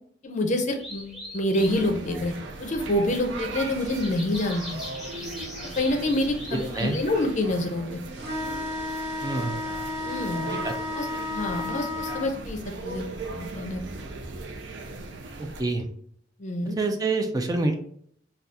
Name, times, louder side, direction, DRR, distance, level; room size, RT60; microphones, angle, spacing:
voice 1, 0.2-2.3 2.6-4.8 5.8-8.0 10.0-10.4 11.0-13.0 13.3-13.8 16.4-16.8, left 1 dB, 45° left, 4 dB, 0.5 m, -27 dB
sound 1, 0.8-7.8, left 1 dB, ahead, 1.0 m, -42 dB
sound 2, 1.5-15.6, right 2 dB, 85° right, 0.5 m, -38 dB
voice 2, 6.5-7.0 9.2-9.6 10.5-10.7 15.4-15.9 16.8-17.7, right 3 dB, 20° right, 4 dB, 0.3 m, -27 dB
sound 3, 8.1-12.3, left 2 dB, 70° right, 1.4 m, -32 dB
2.6 x 2.3 x 3.4 m, 0.63 s
head